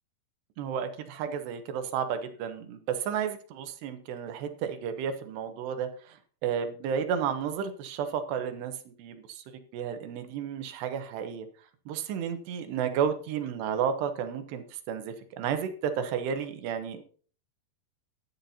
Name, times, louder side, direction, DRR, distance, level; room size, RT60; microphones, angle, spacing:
voice 1, 0.6-6.2 6.4-11.5 11.9-17.1, right 7 dB, 75° right, 8 dB, 3.0 m, -32 dB
13.0 x 11.0 x 2.8 m, 0.42 s
omnidirectional pair, 5.1 m